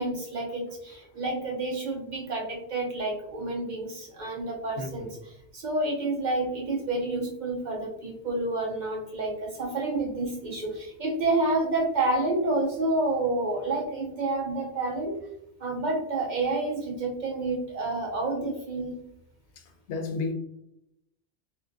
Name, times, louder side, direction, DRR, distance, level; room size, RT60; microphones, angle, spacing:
voice 1, 0.0-15.2 15.6-18.9, right 2 dB, 55° right, 0.6 m, -29 dB
voice 2, 19.9-20.3, left 3 dB, 80° left, 0.9 m, -30 dB
2.9 x 2.5 x 2.4 m
omnidirectional pair, 1.1 m